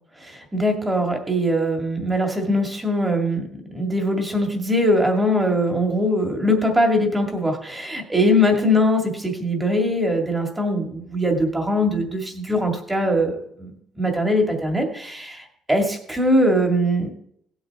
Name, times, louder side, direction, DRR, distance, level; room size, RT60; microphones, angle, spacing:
voice 1, 0.2-3.4 3.7-17.1, equal, 10° right, 2 dB, 2.1 m, -21 dB
17.5 x 8.0 x 3.6 m, 0.68 s
cardioid pair, 150°, 0 cm